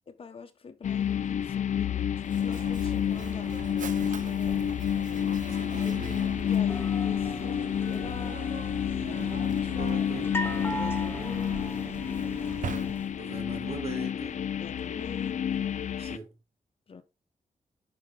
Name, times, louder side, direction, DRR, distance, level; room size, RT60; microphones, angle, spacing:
voice 1, 0.1-4.8 6.1-8.5 8.8-10.3 10.7-11.7 14.5-15.6 16.9-17.0, left 5 dB, 40° left, 1.1 m, -44 dB
sound 1, 0.8-16.2, left 9 dB, 60° left, 0.5 m, -29 dB
Mechanisms, 2.2-13.3, right 6 dB, 70° right, 1.1 m, -42 dB
voice 2, 5.5-6.2 9.2-10.3 12.4-14.4 16.0-16.4, right 5 dB, 50° right, 2.7 m, -42 dB
sound 2, 6.7-13.1, equal, 15° left, 0.8 m, -39 dB
10.5 x 5.1 x 3.7 m
wide cardioid pair, 170°, 14 cm